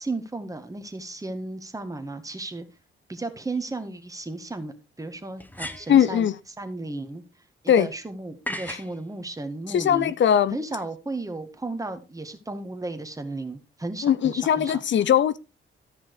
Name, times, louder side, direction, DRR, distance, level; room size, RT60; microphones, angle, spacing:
voice 1, 0.0-2.7 3.1-7.2 7.6-10.1 10.5-14.8, right 2 dB, 15° right, 1.8 m, -34 dB
sound 1, 3.5-3.6 5.4-6.1 8.5-8.9, left 1 dB, 10° left, 1.2 m, -35 dB
voice 2, 5.9-6.3 7.7-7.9 8.7-8.8 9.7-10.6 14.0-15.4, left 9 dB, 65° left, 0.6 m, -20 dB
13.0 x 5.9 x 4.8 m
cardioid pair, 110°, 21 cm